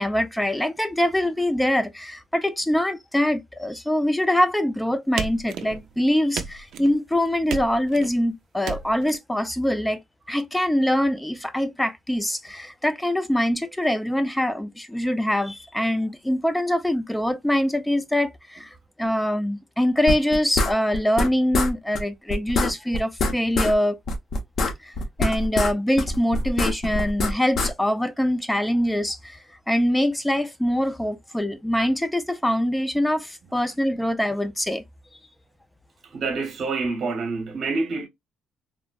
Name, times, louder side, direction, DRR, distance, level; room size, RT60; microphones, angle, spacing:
voice 1, 0.0-10.0 10.3-24.0 24.8-24.9 25.2-29.4 29.7-34.8, left 1 dB, 5° left, 0.5 m, -24 dB
sound 1, 5.2-5.9 6.3-7.0 7.5-8.1 8.6-9.2, right 7 dB, 70° right, 0.4 m, -33 dB
sound 2, 20.1-21.3 21.5-21.7 22.0-22.1 22.3-23.7 24.1-25.7 26.0-27.7, left 2 dB, 55° left, 0.7 m, -24 dB
voice 2, 36.1-38.1, right 3 dB, 50° right, 0.9 m, -27 dB
3.6 x 2.0 x 2.3 m
cardioid pair, 95°, 0 cm